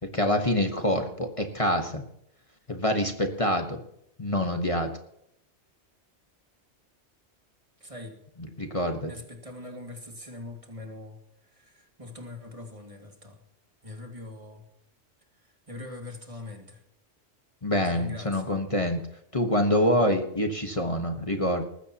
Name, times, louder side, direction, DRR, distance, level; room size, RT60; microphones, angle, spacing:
voice 1, 0.0-2.0 2.7-3.8 4.2-4.9 8.6-9.1 17.6-19.0 19.3-21.6, left 1 dB, 30° left, 5 dB, 1.4 m, -26 dB
voice 2, 7.8-8.2 9.0-13.4 13.8-14.6 15.4-16.8 17.8-18.5, left 2 dB, 30° right, 2 dB, 2.4 m, -42 dB
20.0 x 15.0 x 3.0 m, 0.77 s
omnidirectional pair, 1.2 m